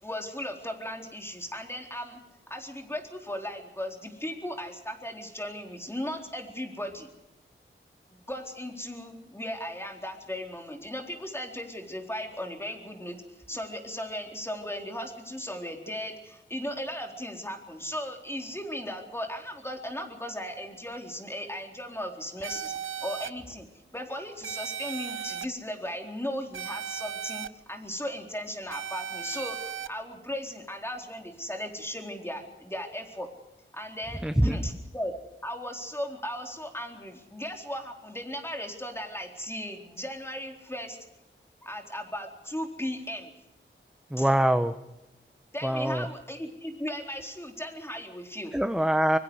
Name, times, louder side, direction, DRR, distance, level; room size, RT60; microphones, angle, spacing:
voice 1, 0.0-2.2 2.5-7.1 8.1-22.7 23.0-33.3 33.7-35.1 35.4-41.0 41.6-43.3 44.2-44.3 45.5-48.6, equal, 10° left, 2 dB, 4.0 m, -37 dB
sound 1, 22.4-23.3 24.4-25.4 26.5-27.5 28.7-29.9, right 8 dB, 85° right, 0.8 m, -36 dB
voice 2, 34.2-34.6 44.1-44.7 45.6-46.0 48.5-49.2, right 1 dB, 5° right, 9 dB, 1.0 m, -24 dB
24.5 x 23.0 x 4.9 m, 0.94 s
wide cardioid pair, 85°, 21 cm